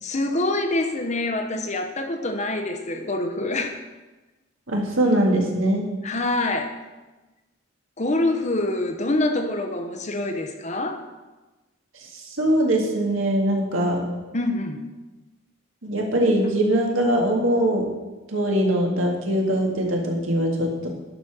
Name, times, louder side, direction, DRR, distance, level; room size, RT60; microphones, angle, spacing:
voice 1, 0.0-3.8 6.0-6.7 8.0-11.0 14.3-14.8, left 2 dB, 35° left, 6 dB, 0.8 m, -25 dB
voice 2, 4.7-5.9 12.1-14.1 15.8-17.9 18.3-20.9, right 1 dB, 70° right, 0 dB, 1.9 m, -22 dB
11.0 x 5.0 x 6.0 m, 1.1 s
head